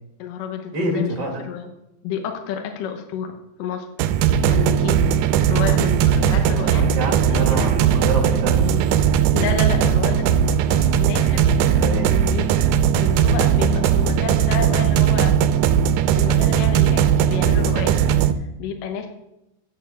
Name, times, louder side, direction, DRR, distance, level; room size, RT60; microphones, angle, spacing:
voice 1, 0.2-1.7 2.0-3.3 3.6-3.9 4.5-5.0 5.5-6.9 7.3-7.6 9.3-10.6 11.0-11.5 12.0-12.6 12.9-15.3 16.1-17.9 18.6-19.1, left 7 dB, 75° left, 4 dB, 2.6 m, -30 dB
voice 2, 0.7-1.4 6.2-8.8 11.7-12.1, right 1 dB, 40° right, 2 dB, 1.7 m, -27 dB
sound 1, 4.0-18.3, right 8 dB, 80° right, 2.0 m, -18 dB
9.0 x 6.8 x 6.8 m, 0.88 s
omnidirectional pair, 4.0 m